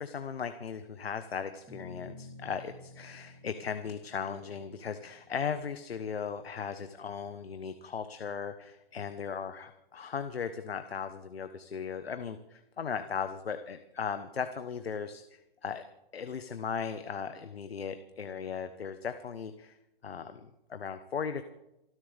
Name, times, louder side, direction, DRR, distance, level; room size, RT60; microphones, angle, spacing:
voice 1, 0.0-15.8 16.1-19.8 20.0-21.4, left 6 dB, 85° left, 9 dB, 1.3 m, -37 dB
sound 1, 1.7-8.2, left 2 dB, 10° right, 2.6 m, -53 dB
28.0 x 11.5 x 3.5 m, 0.91 s
hypercardioid pair, 170°, 30 cm